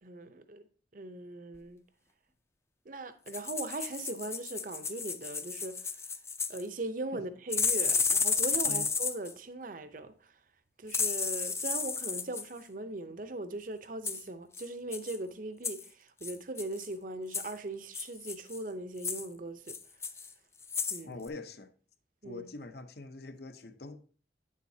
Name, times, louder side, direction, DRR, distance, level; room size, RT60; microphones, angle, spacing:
voice 1, 0.0-0.6 0.9-1.8 2.9-5.8 6.5-10.1 10.8-19.8 20.9-21.2 22.2-22.5, right 2 dB, 45° right, 0.7 m, -39 dB
sound 1, 3.3-6.6 7.5-9.3 10.9-12.4 14.0-14.2 14.5-14.7 14.9-15.2 15.6-15.9 16.2-16.9 17.3-17.5 17.9-18.6 19.0-19.3 19.7-20.3 20.6-21.0 21.3-21.4, left 5 dB, 15° left, 0.5 m, -32 dB
voice 2, 21.0-21.7 22.2-24.0, left 2 dB, 60° left, 0.7 m, -44 dB
9.2 x 7.3 x 2.7 m
head